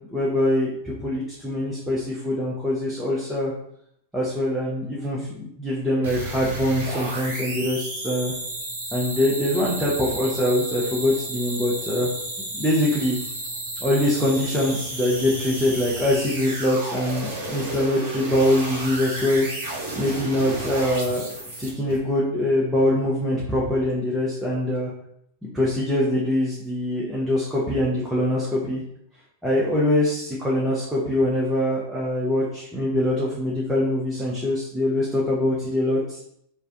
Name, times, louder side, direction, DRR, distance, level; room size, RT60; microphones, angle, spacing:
voice 1, 0.1-3.5 4.1-8.3 8.9-12.1 12.5-13.2 13.8-19.5 20.0-21.3 21.6-24.9 25.4-28.8 29.4-36.2, left 1 dB, 5° right, -7 dB, 0.5 m, -23 dB
sound 1, 6.0-22.0, right 2 dB, 60° right, 0.8 m, -32 dB
2.3 x 2.0 x 2.6 m, 0.71 s
figure-of-eight pair, 90°, 0 cm